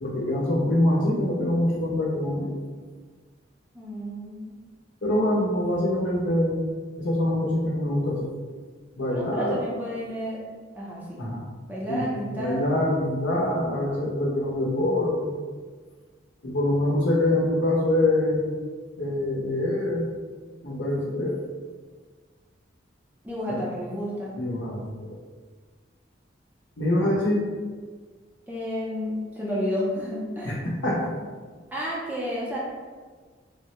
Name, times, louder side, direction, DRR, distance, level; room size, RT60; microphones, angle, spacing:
voice 1, 0.0-2.6 5.0-6.6 7.0-8.3 9.0-9.6 11.2-11.4 11.9-15.4 16.4-18.5 19.0-20.1 20.6-21.4 23.5-23.6 24.4-25.2 26.8-27.5 30.4-30.6 30.8-31.1, left 1 dB, 85° left, -2 dB, 0.7 m, -25 dB
voice 2, 3.7-4.6 9.1-10.5 10.8-11.2 11.7-12.7 23.2-24.3 28.5-30.6 31.7-32.6, equal, 10° right, -6 dB, 0.4 m, -31 dB
3.4 x 2.1 x 2.8 m, 1.5 s
head